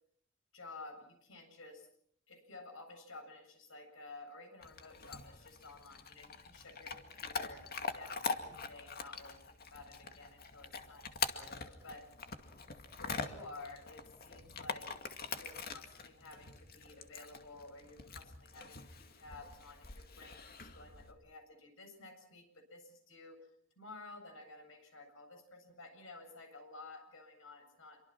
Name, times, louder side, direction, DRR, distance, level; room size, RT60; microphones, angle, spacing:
voice 1, 0.5-1.9 2.3-7.6 7.9-12.1 12.9-15.0 15.3-23.5 23.8-28.0, left 2 dB, 70° left, 5 dB, 7.8 m, -53 dB
Chewing mastication / Dog, 4.6-21.1, left 5 dB, 50° left, 2.3 m, -44 dB
27.5 x 24.5 x 6.1 m, 0.64 s
head